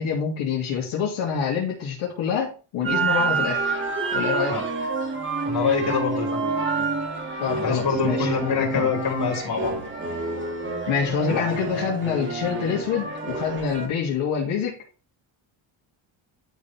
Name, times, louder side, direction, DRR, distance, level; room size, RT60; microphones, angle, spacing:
voice 1, 0.0-3.6 4.1-4.6 7.4-8.9 10.9-14.8, left 6 dB, 75° left, -5 dB, 2.9 m, -26 dB
sound 1, 2.8-13.9, right 4 dB, 25° right, 2.4 m, -28 dB
voice 2, 5.4-7.0 7.6-9.7, left 5 dB, 50° left, -1 dB, 4.0 m, -26 dB
12.0 x 4.4 x 3.5 m, 0.36 s
cardioid pair, 120°, 49 cm